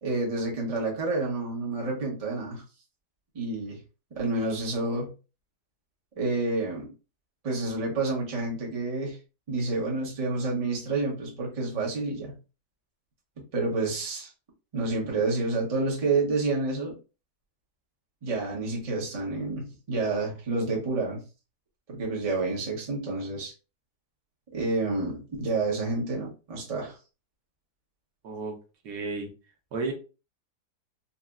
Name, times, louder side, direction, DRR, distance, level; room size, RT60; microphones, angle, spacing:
voice 1, 0.0-2.6 3.3-3.8 4.2-5.1 6.2-6.9 7.4-9.2 9.5-12.3 13.5-14.3 14.7-17.0 18.2-21.2 21.9-23.5 24.5-27.0, right 3 dB, 30° right, -3 dB, 0.8 m, -29 dB
voice 2, 28.8-29.3 29.7-29.9, right 3 dB, 75° right, 1 dB, 1.3 m, -32 dB
4.0 x 2.0 x 2.3 m, 0.33 s
omnidirectional pair, 1.8 m